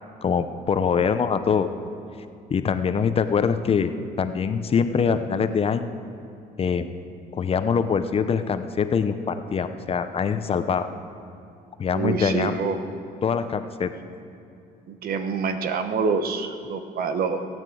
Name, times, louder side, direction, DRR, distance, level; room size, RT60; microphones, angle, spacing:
voice 1, 0.2-1.7 2.5-3.9 4.2-5.9 6.6-6.9 7.3-10.9 11.8-12.6 13.2-13.9, left 6 dB, 35° left, 10 dB, 0.8 m, -23 dB
voice 2, 11.9-12.8 14.9-17.5, right 5 dB, 60° right, 8 dB, 1.2 m, -26 dB
17.0 x 9.1 x 7.8 m, 2.6 s
cardioid pair, 110°, 17 cm